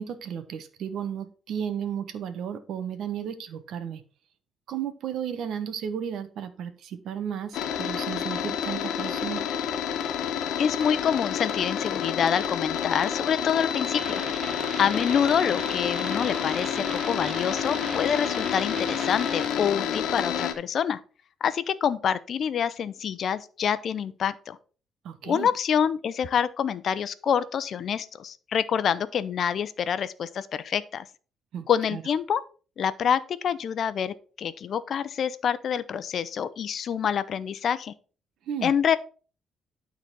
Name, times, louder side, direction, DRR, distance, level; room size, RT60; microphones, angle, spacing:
voice 1, 0.0-4.0 4.7-9.4 25.0-25.5 31.5-32.0 38.5-38.7, right 8 dB, 75° right, 10 dB, 1.2 m, -34 dB
sound 1, 7.5-20.5, left 8 dB, 80° left, 1.2 m, -29 dB
voice 2, 10.6-14.2 14.8-21.0 21.4-24.6 25.2-31.1 31.7-32.4 32.8-37.9 38.6-39.0, left 8 dB, 60° left, 15 dB, 0.7 m, -26 dB
sound 2, 14.0-19.5, right 4 dB, 35° right, 0.6 m, -39 dB
12.0 x 4.1 x 4.7 m, 0.38 s
cardioid pair, 90°, 0 cm